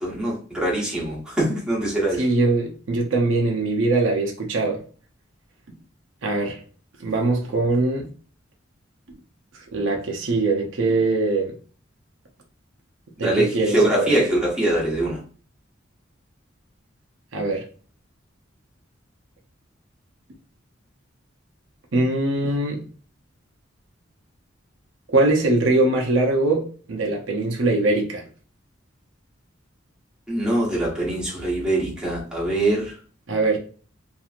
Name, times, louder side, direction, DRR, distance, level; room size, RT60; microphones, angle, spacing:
voice 1, 0.0-2.2 13.2-15.2 30.3-32.9, right 1 dB, 5° right, 1.1 m, -23 dB
voice 2, 2.2-4.8 6.2-6.6 7.0-8.1 9.7-11.5 13.2-14.1 17.3-17.6 21.9-22.8 25.1-28.2 33.3-33.6, right 2 dB, 75° right, 0.6 m, -22 dB
2.9 x 2.6 x 2.4 m
head